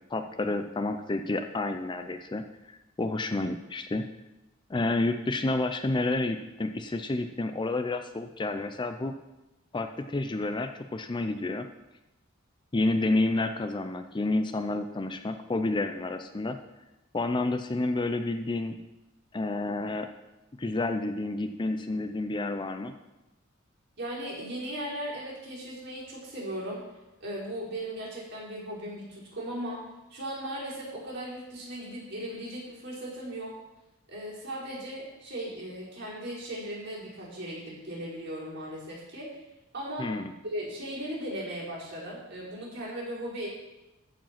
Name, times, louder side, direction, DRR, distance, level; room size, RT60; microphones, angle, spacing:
voice 1, 0.1-4.0 4.7-9.1 9.7-11.7 12.7-16.6 17.1-18.8 19.3-20.1 20.6-22.9 40.0-40.3, left 2 dB, 20° left, 8 dB, 0.4 m, -30 dB
voice 2, 24.0-26.8 27.2-29.8 30.1-33.5 34.1-39.3 39.7-40.1 40.4-43.5, right 1 dB, 55° right, -6 dB, 4.4 m, -37 dB
14.5 x 5.1 x 5.8 m, 1.0 s
head